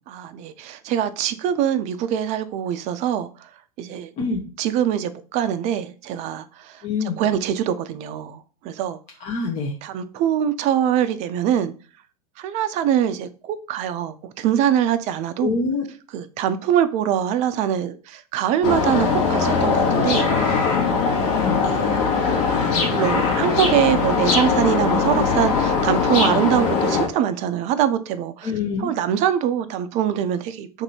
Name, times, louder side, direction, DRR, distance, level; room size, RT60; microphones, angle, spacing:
voice 1, 0.1-3.3 3.8-4.1 4.6-6.8 7.2-9.0 9.8-11.7 12.4-15.5 16.1-21.3 21.6-21.9 22.9-28.5 28.8-30.8, right 10 dB, 35° right, 11 dB, 0.4 m, -23 dB
voice 2, 6.8-7.2 9.2-9.7 15.4-15.9 21.3-21.6 28.4-28.9, left 4 dB, 35° left, 1 dB, 0.6 m, -25 dB
sound 1, 18.6-27.1, left 5 dB, 55° left, 1.2 m, -20 dB
2.7 x 2.6 x 4.2 m, 0.37 s
figure-of-eight pair, 90°, 20 cm